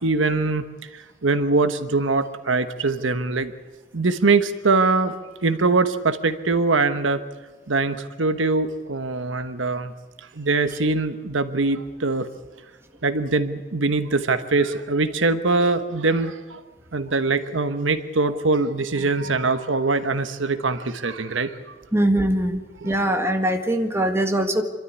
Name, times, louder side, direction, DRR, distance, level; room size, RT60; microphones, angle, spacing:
voice 1, 0.0-3.5 3.9-5.1 5.4-7.2 7.7-9.9 10.3-12.3 13.0-16.6 16.9-21.7 22.8-22.9, right 3 dB, 90° right, 10 dB, 1.2 m, -22 dB
voice 2, 21.9-24.6, right 1 dB, 15° right, 4 dB, 1.7 m, -22 dB
26.0 x 13.0 x 9.7 m, 1.4 s
head